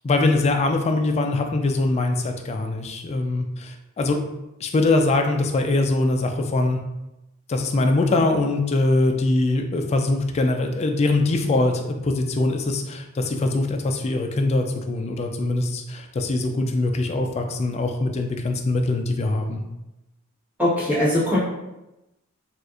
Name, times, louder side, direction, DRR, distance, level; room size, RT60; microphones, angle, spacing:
voice 1, 0.0-4.2 4.6-6.8 7.5-19.6, left 2 dB, 30° left, 4 dB, 0.3 m, -22 dB
voice 2, 20.6-21.4, left 1 dB, 10° right, -10 dB, 1.3 m, -20 dB
4.2 x 2.4 x 2.4 m, 0.95 s
head